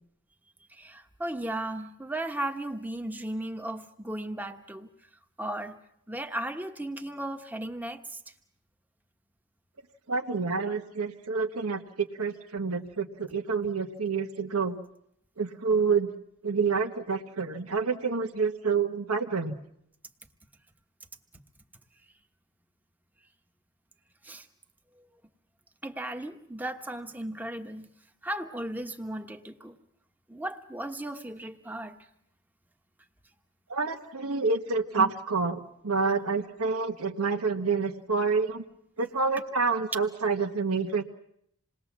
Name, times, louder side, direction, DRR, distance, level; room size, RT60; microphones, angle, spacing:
voice 1, 0.8-4.9 5.4-5.8 6.1-8.2 24.2-24.4 25.8-27.9 28.2-29.8 30.3-32.0 35.0-35.1, right 1 dB, 10° right, 5 dB, 1.2 m, -35 dB
voice 2, 10.1-14.8 15.4-16.1 16.4-19.6 33.7-38.6 39.0-41.0, right 4 dB, 85° right, 4 dB, 1.3 m, -28 dB
27.5 x 20.0 x 7.4 m, 0.74 s
head